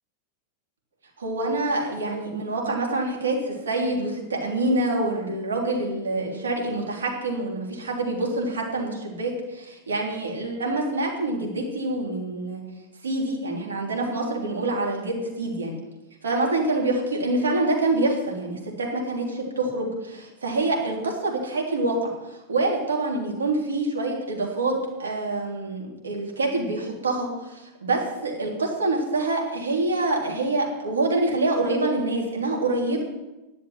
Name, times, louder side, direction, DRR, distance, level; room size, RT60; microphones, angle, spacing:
voice 1, 1.2-12.6 13.0-15.8 16.2-24.7 25.0-33.0, right 2 dB, 70° right, -1 dB, 3.2 m, -26 dB
11.5 x 7.3 x 9.2 m, 1.1 s
figure-of-eight pair, 90°, 0 cm